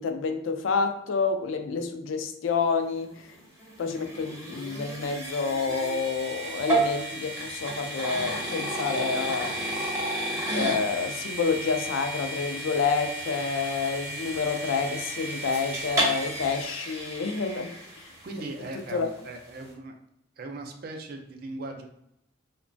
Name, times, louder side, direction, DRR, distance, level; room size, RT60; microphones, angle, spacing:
voice 1, 0.0-3.1 3.8-9.5 10.5-17.7 18.9-19.1, left 5 dB, 85° left, 6 dB, 0.4 m, -28 dB
sound 1, 3.2-18.4, right 1 dB, 15° right, 0.7 m, -32 dB
voice 2, 18.2-20.0 20.4-21.9, right 2 dB, 50° right, 4 dB, 0.4 m, -38 dB
3.0 x 2.1 x 2.5 m, 0.80 s
head